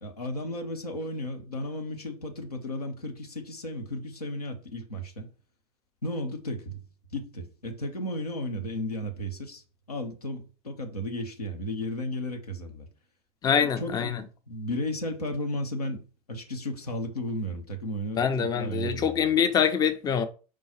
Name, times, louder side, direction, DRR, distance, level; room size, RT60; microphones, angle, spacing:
voice 1, 0.0-5.3 6.0-6.8 7.1-12.9 13.4-14.2 14.5-19.3, left 1 dB, 85° left, 0.8 m, -34 dB
voice 2, 13.4-14.2 18.2-20.2, left 7 dB, 20° left, 0.5 m, -24 dB
4.8 x 2.3 x 4.1 m
figure-of-eight pair, 80°, 19 cm